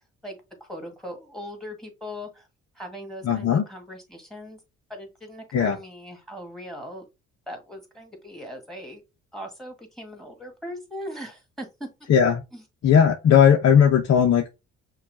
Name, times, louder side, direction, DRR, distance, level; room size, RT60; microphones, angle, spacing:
voice 1, 0.2-2.5 2.8-4.6 4.9-7.0 7.5-9.0 9.3-11.9 12.5-12.6, equal, ahead, 1.9 m, -39 dB
voice 2, 3.2-3.6 5.5-5.8 12.1-12.4 12.8-14.5, left 8 dB, 55° left, 0.8 m, -17 dB
5.7 x 2.4 x 3.5 m
cardioid pair, 90°, 30 cm